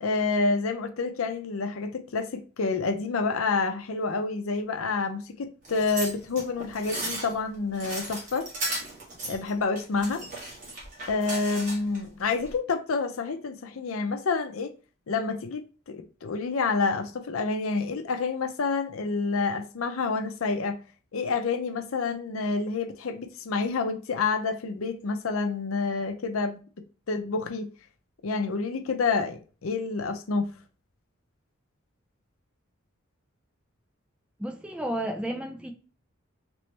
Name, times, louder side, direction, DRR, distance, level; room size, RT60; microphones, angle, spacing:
voice 1, 0.0-8.5 9.2-10.2 11.1-14.7 15.1-20.8 21.1-26.6 27.1-27.7 28.2-30.5, left 4 dB, 85° left, 0.5 m, -28 dB
sound 1, 5.6-12.0 12.4-12.5, right 1 dB, 40° right, 1.4 m, -36 dB
voice 2, 34.4-35.7, right 1 dB, 5° right, 0.4 m, -32 dB
3.0 x 3.0 x 3.2 m
head